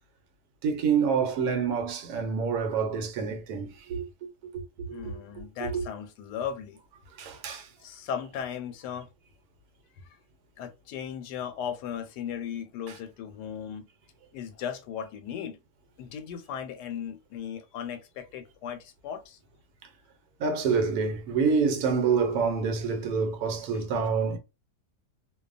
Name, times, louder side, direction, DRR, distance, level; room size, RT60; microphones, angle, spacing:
voice 1, 0.6-4.0 4.5-4.6 4.9-5.0 5.6-5.8 7.2-7.7 12.9-13.0 20.4-24.4, right 5 dB, 75° right, 1.1 m, -27 dB
voice 2, 4.9-6.8 7.8-9.1 10.6-13.9 14.3-15.6 16.0-19.4, left 8 dB, 90° left, 1.2 m, -37 dB
2.6 x 2.2 x 2.4 m
omnidirectional pair, 1.7 m